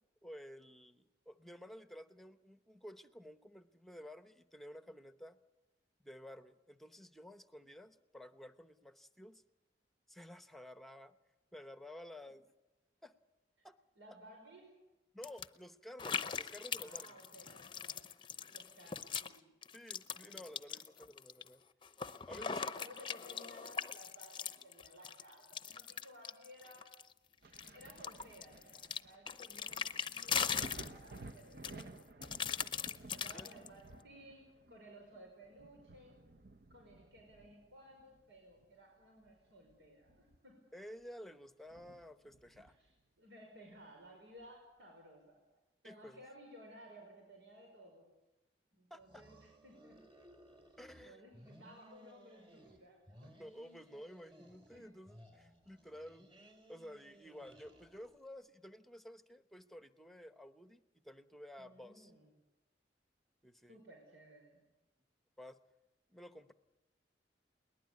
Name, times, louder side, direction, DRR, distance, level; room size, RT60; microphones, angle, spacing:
voice 1, 0.2-5.4 6.0-9.4 10.1-11.1 11.5-12.4 13.0-13.1 13.6-13.8 15.1-17.2 19.7-21.6 22.3-22.6 33.3-33.6 40.7-42.8 45.8-46.2 48.9-49.2 50.8-51.2 53.4-56.3 56.7-62.1 63.4-63.8 65.4-65.6 66.1-66.5, equal, ahead, 10 dB, 0.9 m, -53 dB
voice 2, 14.0-14.7 16.7-18.0 18.5-19.5 20.2-20.4 22.3-26.9 27.7-32.8 33.1-34.4 34.7-36.2 36.7-40.6 42.6-42.9 43.2-45.4 45.8-48.1 48.7-50.0 51.0-53.3 54.7-54.9 61.6-62.3 63.7-64.6, equal, 85° right, 0 dB, 5.4 m, -58 dB
sound 1, 15.2-15.5 16.0-19.4 19.6-21.5 21.8-27.1 27.5-31.3 31.6-33.7, left 7 dB, 30° left, 0.7 m, -40 dB
Thunder, 27.4-38.8 39.2-40.7 41.0-41.1 41.7-43.0 44.4-44.5, right 2 dB, 60° right, 1.0 m, -55 dB
sound 2, 49.0-51.0 51.3-52.8 53.1-54.8 55.1-58.3, equal, 30° right, 4.2 m, -60 dB
21.5 x 19.5 x 9.4 m, 1.0 s
head